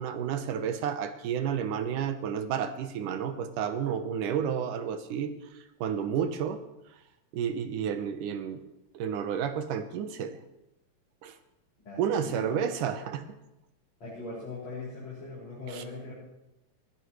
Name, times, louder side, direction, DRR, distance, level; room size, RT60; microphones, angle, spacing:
voice 1, 0.0-5.3 5.8-6.6 7.3-8.6 8.9-10.4 11.2-11.4 12.0-13.2 15.7-15.8, right 8 dB, 80° right, 9 dB, 2.5 m, -31 dB
voice 2, 11.8-12.7 14.0-16.1, left 3 dB, 55° left, -9 dB, 6.8 m, -40 dB
21.5 x 15.5 x 3.2 m, 0.91 s
omnidirectional pair, 3.7 m